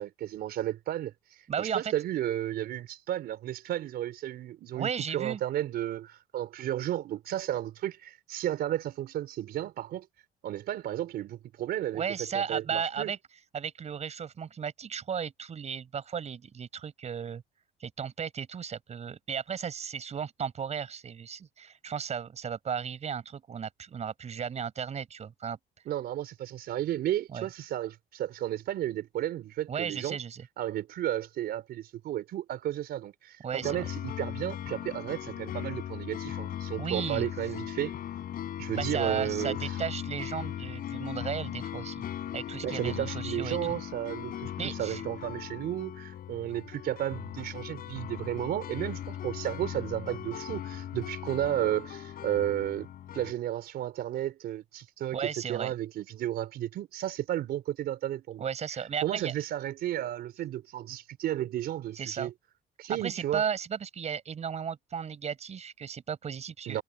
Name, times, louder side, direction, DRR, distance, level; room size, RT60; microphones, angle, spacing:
voice 1, 0.0-10.1 10.4-12.0 12.3-13.1 25.9-30.2 30.6-37.9 38.6-39.8 42.6-52.9 53.1-58.4 59.0-62.3 62.8-63.4 66.7-66.8, right 12 dB, 70° right, 4.2 m, -33 dB
voice 2, 1.5-1.9 4.7-5.4 11.9-13.2 13.5-17.4 17.8-25.6 27.3-27.5 29.7-30.5 33.4-33.8 36.8-37.3 38.8-42.0 42.3-43.8 44.6-45.0 55.1-55.7 58.4-59.3 61.9-62.3 63.0-66.8, right 7 dB, 40° right, 5.3 m, -35 dB
sound 1, 33.6-53.3, left 11 dB, 60° left, 4.8 m, -38 dB
cardioid pair, 110°, 17 cm